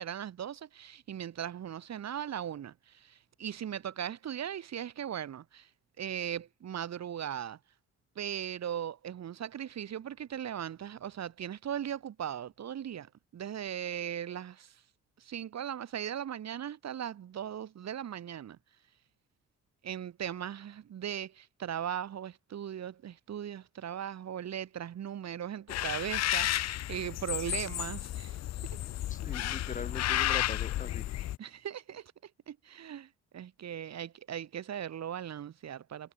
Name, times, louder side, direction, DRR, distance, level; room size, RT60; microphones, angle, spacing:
voice 1, 0.0-5.7 6.0-7.6 8.1-14.8 15.2-18.6 19.8-28.4 31.4-36.1, right 9 dB, 60° right, 3.3 m, -38 dB
sound 1, 25.7-31.4, left 13 dB, 60° left, 0.6 m, -32 dB
voice 2, 29.1-31.2, left 4 dB, 25° left, 1.4 m, -41 dB
cardioid pair, 90°, 30 cm